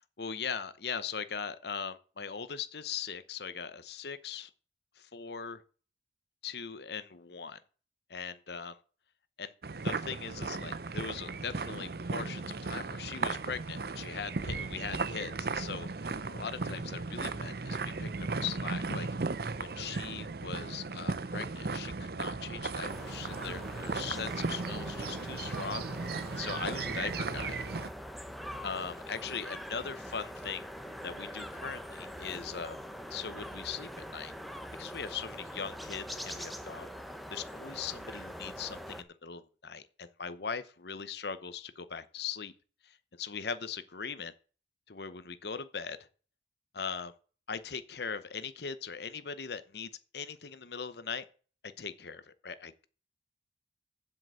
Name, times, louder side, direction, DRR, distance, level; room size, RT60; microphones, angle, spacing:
voice 1, 0.2-4.5 5.0-5.6 6.4-7.6 8.1-8.8 9.4-9.5 9.8-19.1 19.6-27.6 28.6-30.6 31.0-32.8 33.1-34.3 34.8-36.9 37.3-42.5 42.8-44.3 44.9-46.0 46.7-47.1 47.5-51.2 51.8-52.9, left 6 dB, 65° left, 0.8 m, -40 dB
sound 1, 9.6-27.9, right 3 dB, 60° right, 0.7 m, -36 dB
sound 2, 22.9-39.0, equal, ahead, 0.8 m, -43 dB
sound 3, 30.8-36.9, left 1 dB, 25° left, 2.7 m, -61 dB
7.7 x 7.7 x 7.6 m
head